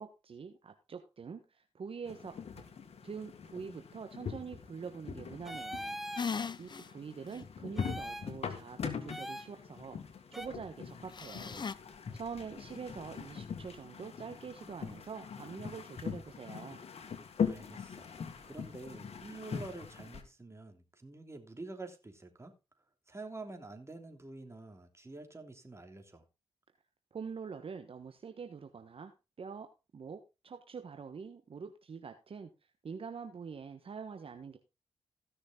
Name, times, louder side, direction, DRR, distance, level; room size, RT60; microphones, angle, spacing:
voice 1, 0.0-2.4 3.0-6.0 6.3-10.0 10.3-11.6 12.1-16.8 27.1-29.7 29.9-32.5 32.8-34.6, right 6 dB, 55° right, 1.3 m, -45 dB
sound 1, 2.0-20.2, left 6 dB, 65° left, 1.9 m, -42 dB
sound 2, 5.4-6.3 7.8-8.3 9.1-9.5 10.3-10.5, equal, ahead, 1.1 m, -41 dB
sound 3, 6.2-6.9 7.3-7.4 11.1-11.7, left 5 dB, 40° left, 0.7 m, -37 dB
voice 2, 17.4-18.1 18.4-22.5 23.1-26.2, right 2 dB, 25° right, 3.1 m, -47 dB
16.0 x 6.3 x 3.8 m
cardioid pair, 55°, 12 cm